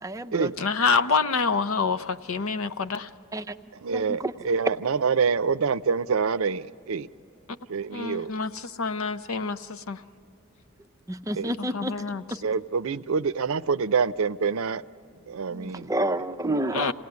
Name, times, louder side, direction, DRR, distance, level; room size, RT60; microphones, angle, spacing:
voice 1, 0.0-0.5 3.3-3.6 3.9-4.3 11.1-11.9 15.5-16.9, right 1 dB, 15° right, 0.5 m, -29 dB
voice 2, 0.6-3.1 7.5-7.6 7.9-10.0 11.6-12.2 16.7-16.9, left 4 dB, 75° left, 0.7 m, -27 dB
voice 3, 3.8-7.1 7.7-8.3 11.4-11.5 12.4-14.8 15.3-15.9, right 5 dB, 75° right, 0.5 m, -26 dB
28.5 x 18.0 x 9.5 m
head